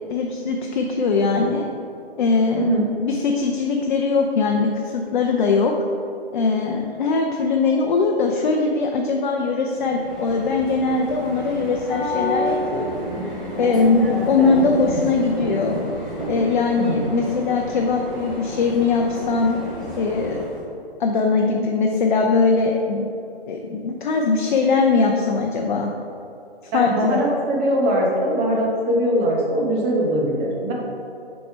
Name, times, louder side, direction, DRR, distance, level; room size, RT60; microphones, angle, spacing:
voice 1, 0.1-1.6 2.2-5.7 6.3-13.0 13.6-15.8 16.3-19.6 20.0-20.5 21.0-23.1 23.5-25.9 26.7-27.2, left 4 dB, 50° left, 2 dB, 0.6 m, -21 dB
voice 2, 2.6-2.9 16.8-17.1 26.7-30.7, right 1 dB, 20° right, -2 dB, 1.0 m, -21 dB
sound 1, 9.8-20.6, equal, ahead, 1.5 m, -29 dB
6.4 x 4.3 x 4.6 m, 2.7 s
figure-of-eight pair, 135°, 31 cm